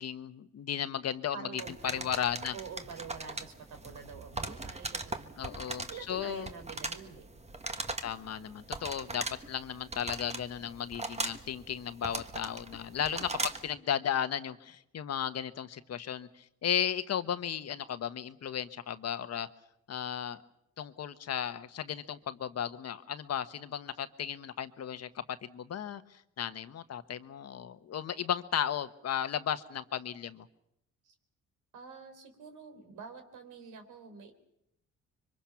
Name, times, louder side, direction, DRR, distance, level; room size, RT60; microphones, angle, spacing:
voice 1, 0.0-2.5 5.4-6.5 8.0-16.3 16.6-19.5 19.9-20.4 20.8-26.0 26.4-30.5, left 9 dB, 55° left, 11 dB, 1.2 m, -35 dB
voice 2, 1.3-2.1 2.5-5.3 5.7-7.3 13.0-13.4 31.0-31.1 31.7-34.3, right 6 dB, 85° right, 7 dB, 3.8 m, -47 dB
sound 1, 1.6-13.7, right 3 dB, 20° right, 1.5 m, -40 dB
25.5 x 24.0 x 5.9 m, 0.78 s
cardioid pair, 90°, 30 cm